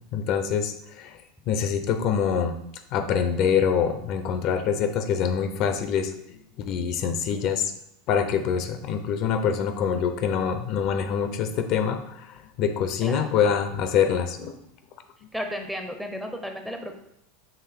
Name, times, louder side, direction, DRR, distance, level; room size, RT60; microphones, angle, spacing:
voice 1, 0.1-1.2 1.5-2.5 2.9-7.7 8.1-14.5, left 7 dB, 55° left, 8 dB, 0.5 m, -25 dB
voice 2, 15.3-17.1, equal, 5° right, 4 dB, 0.6 m, -33 dB
4.6 x 3.1 x 3.5 m, 0.75 s
hypercardioid pair, 105°, 0 cm